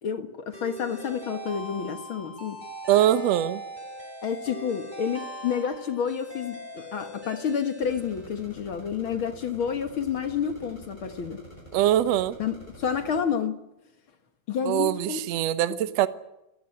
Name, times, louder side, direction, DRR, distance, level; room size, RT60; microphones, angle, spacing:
voice 1, 0.0-2.6 4.2-11.4 12.4-13.6 14.5-15.2, left 7 dB, 55° left, 1.6 m, -29 dB
sound 1, 0.5-8.7, right 1 dB, 10° right, 5.1 m, -41 dB
voice 2, 2.9-3.6 11.7-12.4 14.6-16.1, right 12 dB, 65° right, 1.8 m, -23 dB
sound 2, 7.8-13.2, equal, 10° left, 6.4 m, -47 dB
28.5 x 15.5 x 9.9 m
omnidirectional pair, 3.9 m